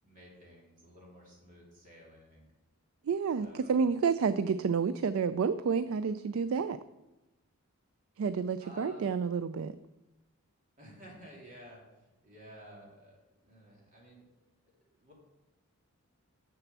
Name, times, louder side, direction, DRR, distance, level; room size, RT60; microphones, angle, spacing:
voice 1, 0.0-2.5 3.4-3.7 8.6-9.1 10.8-13.2 13.4-14.3 15.0-15.1, equal, 35° right, -3 dB, 3.0 m, -53 dB
voice 2, 3.0-6.8 8.2-9.7, right 5 dB, 65° right, 13 dB, 0.3 m, -30 dB
7.0 x 6.7 x 7.3 m, 0.98 s
head